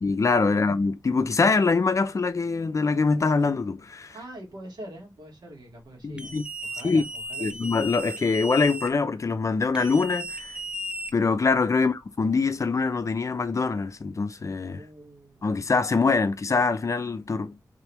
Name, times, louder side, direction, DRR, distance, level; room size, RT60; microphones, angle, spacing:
voice 1, 0.0-4.1 6.0-6.4 6.8-7.0 7.4-10.5 11.1-14.8 15.4-17.6, left 4 dB, 45° left, 0.5 m, -24 dB
voice 2, 4.1-7.7 11.7-11.9 14.7-15.5, right 1 dB, 70° right, 2.0 m, -44 dB
sound 1, 6.2-8.9 9.7-11.5, equal, 15° right, 0.6 m, -35 dB
3.7 x 3.4 x 2.9 m
wide cardioid pair, 110°, 7 cm